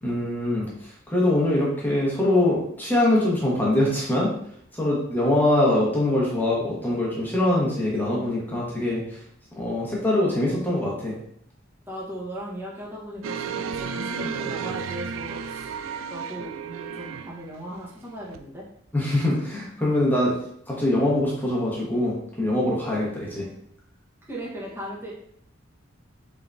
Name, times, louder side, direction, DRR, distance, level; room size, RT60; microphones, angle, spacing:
voice 1, 0.0-4.3 4.7-9.0 9.6-11.2 18.9-20.3 20.7-23.4, left 1 dB, 10° left, -5 dB, 1.0 m, -23 dB
voice 2, 11.9-15.7 16.1-18.6 24.3-25.1, equal, 10° right, -5 dB, 1.0 m, -37 dB
sound 1, 13.2-17.5 18.3-18.4, right 6 dB, 85° right, 0.3 m, -33 dB
3.7 x 3.3 x 2.5 m, 0.68 s
head